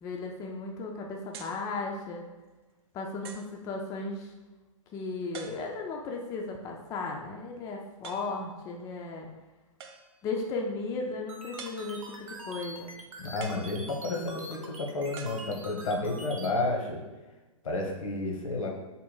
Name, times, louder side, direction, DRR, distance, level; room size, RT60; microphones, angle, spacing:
voice 1, 0.0-2.2 2.9-4.3 4.9-9.3 10.2-12.9, left 3 dB, 20° left, 0 dB, 0.3 m, -35 dB
sound 1, 1.3-1.7 2.4-2.5 3.2-3.6 5.3-6.0 8.0-8.5 9.8-10.3 11.6-12.3 13.4-14.3 15.2-16.0, right 6 dB, 50° right, 0.4 m, -47 dB
sound 2, 11.3-16.5, right 2 dB, 75° right, 0.8 m, -44 dB
voice 2, 13.2-17.0 17.6-18.7, left 2 dB, 75° left, 1 dB, 0.9 m, -31 dB
3.8 x 2.1 x 3.8 m, 1.1 s
hypercardioid pair, 120°, 17 cm